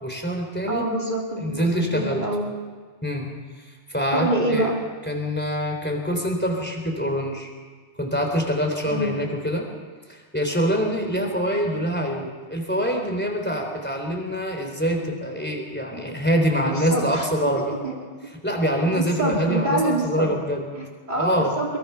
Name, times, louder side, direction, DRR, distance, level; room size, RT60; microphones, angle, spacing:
voice 1, 0.0-0.8 1.4-2.3 3.0-3.3 3.6-4.7 5.1-7.5 8.0-9.7 10.1-17.8 18.4-20.6 21.2-21.5, equal, 10° left, 2 dB, 3.7 m, -25 dB
voice 2, 0.7-2.5 4.1-4.8 8.9-9.1 16.7-17.3 17.8-17.9 18.9-20.3 20.7-21.8, right 1 dB, 40° right, -1 dB, 2.8 m, -26 dB
22.5 x 22.5 x 5.8 m, 1.5 s
omnidirectional pair, 1.2 m